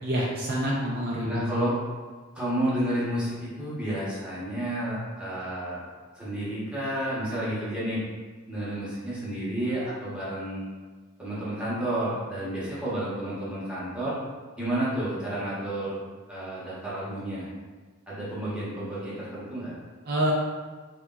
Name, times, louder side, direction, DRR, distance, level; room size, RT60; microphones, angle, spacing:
voice 1, 0.0-1.4 20.1-20.3, right 1 dB, 45° right, -5 dB, 0.4 m, -27 dB
voice 2, 1.3-1.8 2.3-5.8 6.1-8.0 8.5-10.6 11.2-14.1 14.6-16.0 16.3-17.5 18.1-19.7, right 1 dB, 5° right, -10 dB, 0.9 m, -31 dB
3.2 x 2.8 x 2.3 m, 1.4 s
head